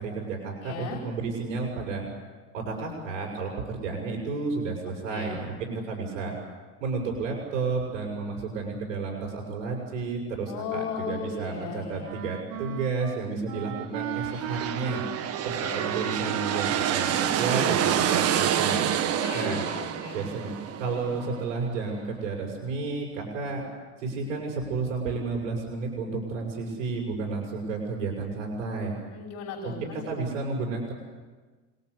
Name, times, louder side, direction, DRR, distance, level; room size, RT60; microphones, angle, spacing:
voice 1, 0.0-2.0 2.5-6.3 6.8-15.0 15.4-18.9 19.3-19.6 20.1-23.6 24.0-29.0 29.6-30.9, right 4 dB, 85° right, -1 dB, 6.8 m, -31 dB
voice 2, 0.6-1.0 5.1-5.4 10.5-12.2 15.6-15.9 19.2-20.3 29.1-30.1, left 5 dB, 50° left, 1 dB, 5.5 m, -36 dB
Wind instrument woodwind instrument, 12.0-19.1, right 12 dB, 55° right, 1.7 m, -37 dB
sound 1, 14.2-21.8, right 9 dB, 40° right, 1.6 m, -28 dB
28.0 x 21.0 x 8.3 m, 1.3 s
supercardioid pair, 130°, 38 cm